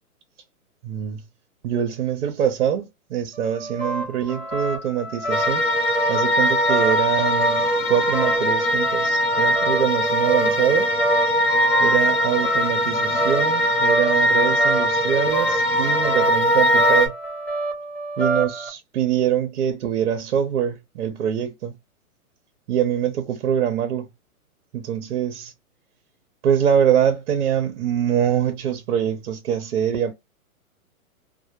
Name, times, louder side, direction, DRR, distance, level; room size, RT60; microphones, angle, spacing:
voice 1, 0.8-1.2 1.6-5.6 6.1-10.9 11.8-17.1 18.2-21.7 22.7-24.1 24.7-25.5 26.4-30.1, right 9 dB, 55° right, 0.6 m, -24 dB
sound 1, 3.3-18.7, right 2 dB, 5° left, 0.5 m, -29 dB
sound 2, 5.3-17.1, equal, 40° left, 0.8 m, -21 dB
2.1 x 2.1 x 2.8 m
hypercardioid pair, 140°, 44 cm